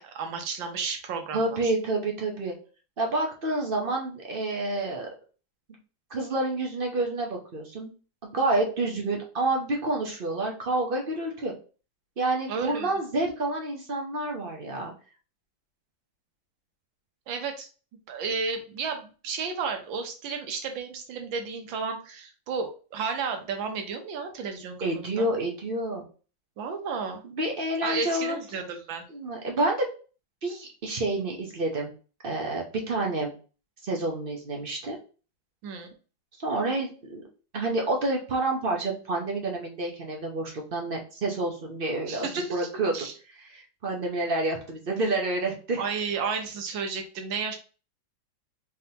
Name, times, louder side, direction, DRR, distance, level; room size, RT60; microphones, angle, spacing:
voice 1, 0.0-1.7 12.5-12.9 17.3-17.7 18.1-25.3 26.6-27.2 27.8-29.0 35.6-35.9 42.1-42.7 42.9-43.1 45.8-47.6, right 5 dB, 85° right, 5 dB, 1.6 m, -32 dB
voice 2, 1.3-2.5 3.0-5.1 6.1-7.9 8.2-11.5 12.2-14.9 24.8-26.0 27.2-28.4 29.1-29.8 30.4-31.9 32.2-33.3 33.8-35.0 36.4-37.2 37.5-42.9 43.4-45.9, right 2 dB, 40° right, 1 dB, 0.8 m, -28 dB
4.0 x 3.6 x 2.8 m, 0.36 s
omnidirectional pair, 2.0 m